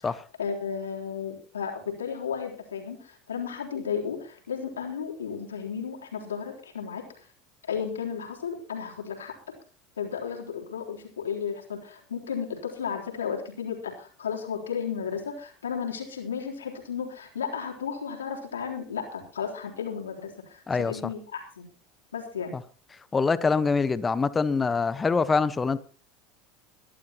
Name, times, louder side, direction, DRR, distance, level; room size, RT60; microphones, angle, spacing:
voice 1, 0.0-7.3 7.7-9.3 10.0-21.7 22.1-22.6, left 7 dB, 85° left, 3.6 m, -34 dB
voice 2, 20.7-21.0 23.1-25.8, left 4 dB, 20° left, 1.1 m, -24 dB
23.0 x 11.5 x 3.0 m
hypercardioid pair, 80°, 0 cm